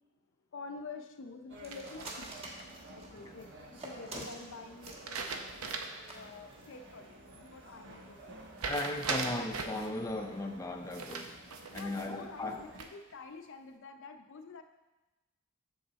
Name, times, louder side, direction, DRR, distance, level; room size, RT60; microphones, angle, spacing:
voice 1, 0.5-2.3 2.9-5.3 6.1-8.4 11.7-14.6, left 4 dB, 60° left, 7 dB, 0.5 m, -48 dB
sound 1, 1.5-12.8, right 1 dB, 60° right, 1.2 m, -53 dB
sound 2, 1.6-3.2 3.8-5.1 5.4-5.5 5.8-5.9 6.1-6.2 6.6-6.8, right 1 dB, 30° right, 1.2 m, -45 dB
sound 3, 1.7-2.6 4.8-6.1 6.5-6.6 8.6-9.9 10.9-12.1 12.5-13.1, right 4 dB, 85° right, 0.7 m, -39 dB
voice 2, 8.6-11.4 11.7-12.6, left 2 dB, 15° left, 2 dB, 0.5 m, -37 dB
7.1 x 6.2 x 4.0 m, 1.1 s
head